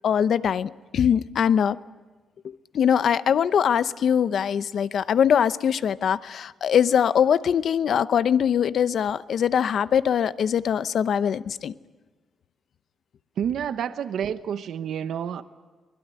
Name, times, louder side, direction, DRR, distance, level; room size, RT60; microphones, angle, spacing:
voice 1, 0.0-1.8 2.4-11.7, left 8 dB, 60° left, 15 dB, 0.7 m, -22 dB
voice 2, 13.4-15.4, right 8 dB, 75° right, 11 dB, 0.9 m, -29 dB
23.5 x 21.0 x 9.8 m, 1.3 s
cardioid pair, 130°, 0 cm